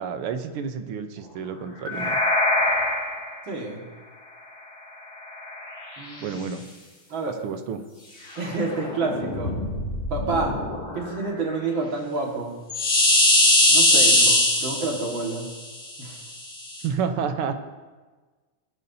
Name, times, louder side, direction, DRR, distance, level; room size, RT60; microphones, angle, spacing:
voice 1, 0.0-2.2 6.2-6.6 7.3-7.8 16.8-17.5, right 6 dB, 85° right, 8 dB, 1.8 m, -30 dB
sound 1, 1.9-3.3 5.5-5.6 8.6-11.1 12.7-15.4 16.8-16.9, left 1 dB, 25° left, 2.2 m, -21 dB
voice 2, 3.5-3.8 6.0-6.4 7.1-7.3 8.4-9.5 10.1-10.6 10.9-12.6 13.7-15.5 16.0-16.2, right 3 dB, 65° right, -1 dB, 2.6 m, -29 dB
18.5 x 11.0 x 2.7 m, 1.3 s
omnidirectional pair, 2.4 m